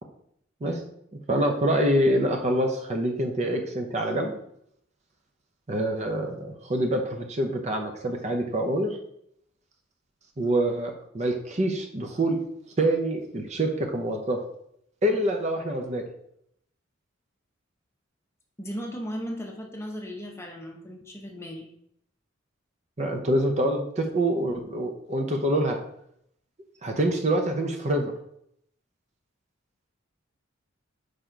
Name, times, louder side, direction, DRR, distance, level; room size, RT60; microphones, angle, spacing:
voice 1, 1.3-4.3 5.7-9.0 10.4-12.4 12.8-14.4 15.0-16.0 23.0-25.8 26.8-28.1, right 1 dB, 35° right, 4 dB, 0.7 m, -26 dB
voice 2, 18.6-21.7, equal, 15° left, 1 dB, 0.8 m, -36 dB
5.0 x 4.1 x 4.5 m, 0.72 s
head